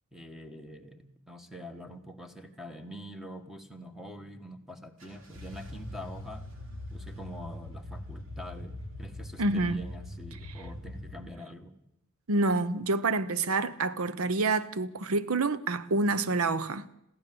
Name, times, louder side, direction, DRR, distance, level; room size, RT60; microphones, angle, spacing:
voice 1, 0.1-6.4 6.9-11.7, equal, ahead, 1.7 m, -45 dB
sound 1, 5.0-11.2, left 1 dB, 65° right, 3.3 m, -42 dB
voice 2, 9.4-9.8 12.3-16.9, right 3 dB, 80° right, 0.8 m, -27 dB
22.0 x 15.5 x 7.8 m
head